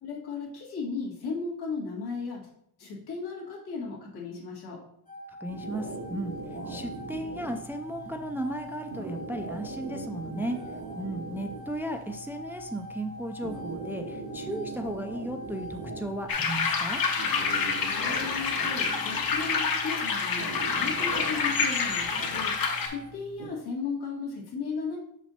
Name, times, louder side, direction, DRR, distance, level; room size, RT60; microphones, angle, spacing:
voice 1, 0.0-2.5 2.8-4.8 17.8-25.0, left 4 dB, 90° left, -3 dB, 2.1 m, -36 dB
sound 1, 5.1-23.1, equal, 20° left, 0.7 m, -44 dB
voice 2, 5.4-6.3 6.7-10.6 11.0-17.1, right 1 dB, 5° right, 5 dB, 0.3 m, -35 dB
sound 2, 5.5-23.5, right 2 dB, 80° right, 2.1 m, -41 dB
sound 3, 16.3-22.9, left 5 dB, 65° left, 1.0 m, -28 dB
6.3 x 6.0 x 2.8 m, 0.70 s
cardioid pair, 140°, 38 cm